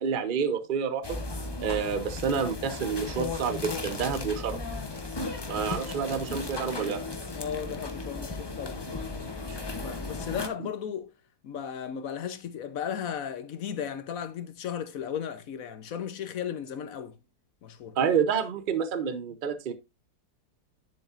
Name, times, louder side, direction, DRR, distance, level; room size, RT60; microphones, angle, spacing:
voice 1, 0.0-1.2 1.6-4.6 5.5-7.0 18.0-19.7, right 6 dB, 50° right, 0.6 m, -28 dB
sound 1, 1.0-10.5, left 3 dB, 25° left, 0.5 m, -35 dB
voice 2, 7.3-11.1 11.4-17.2 17.6-17.9, left 8 dB, 55° left, 1.1 m, -36 dB
10.5 x 7.1 x 2.5 m
omnidirectional pair, 2.0 m